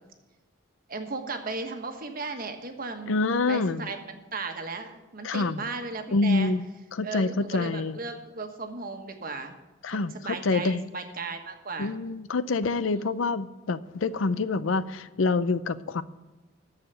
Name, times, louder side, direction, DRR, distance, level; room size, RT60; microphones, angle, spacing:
voice 1, 0.9-3.1 3.5-6.5 7.0-9.6 9.9-11.9 12.9-13.2, right 3 dB, 45° right, 5 dB, 1.4 m, -36 dB
voice 2, 3.1-3.9 5.2-5.6 6.1-6.6 6.9-8.0 9.8-10.8 11.8-16.0, left 3 dB, 85° left, 15 dB, 0.6 m, -26 dB
13.5 x 4.9 x 8.9 m, 1.1 s
head